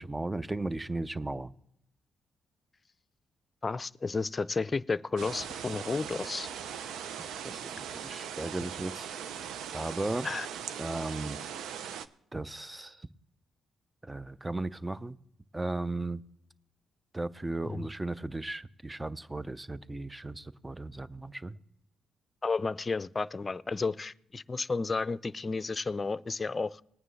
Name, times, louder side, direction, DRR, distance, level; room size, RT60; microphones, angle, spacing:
voice 1, 0.0-1.5 7.4-9.1 9.7-10.3 10.8-11.4 12.3-13.1 14.0-15.2 15.5-16.2 17.1-21.6, right 2 dB, 15° right, 16 dB, 0.7 m, -36 dB
voice 2, 3.6-6.5 10.2-10.5 17.6-17.9 22.4-26.8, left 4 dB, 35° left, 16 dB, 0.5 m, -32 dB
sound 1, 5.2-12.1, right 8 dB, 75° right, 0.7 m, -40 dB
20.0 x 9.0 x 3.3 m, 0.79 s
supercardioid pair, 50°, 0 cm